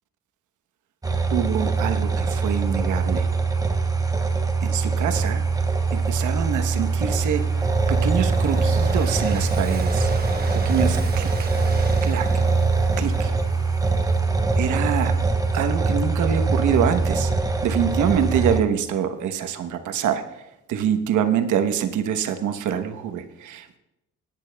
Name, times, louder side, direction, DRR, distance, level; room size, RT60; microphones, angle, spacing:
sound 1, 1.0-18.6, right 4 dB, 10° right, 1.0 m, -22 dB
voice 1, 1.3-3.3 4.6-5.4 5.9-7.4 7.9-10.1 10.6-11.5 12.0-12.3 13.0-13.3 14.6-15.2 15.5-17.3 17.6-20.2 20.7-23.8, right 8 dB, 80° right, 8 dB, 1.1 m, -25 dB
sound 2, 1.7-14.0, equal, 5° left, 4.6 m, -45 dB
Train, 4.9-5.0 5.4-15.8, right 5 dB, 30° right, 1.1 m, -40 dB
18.5 x 10.5 x 2.3 m, 0.89 s
cardioid pair, 90°, 30 cm